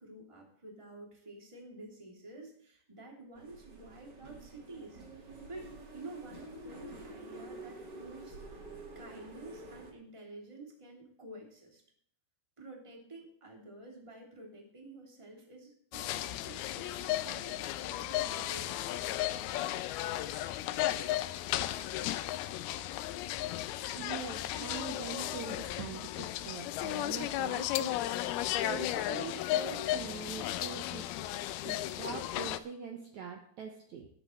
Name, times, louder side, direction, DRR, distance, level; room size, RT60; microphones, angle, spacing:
voice 1, 0.0-5.7 5.9-8.6 8.9-11.8 12.6-19.3, right 2 dB, 10° right, -1 dB, 2.4 m, -50 dB
sound 1, 3.3-9.9, right 2 dB, 35° right, 1.9 m, -48 dB
sound 2, 15.9-32.6, left 14 dB, 90° left, 2.6 m, -35 dB
voice 2, 23.9-28.0 28.6-31.1 31.7-34.1, right 6 dB, 65° right, 2 dB, 2.1 m, -43 dB
19.5 x 9.7 x 3.2 m, 0.65 s
omnidirectional pair, 4.3 m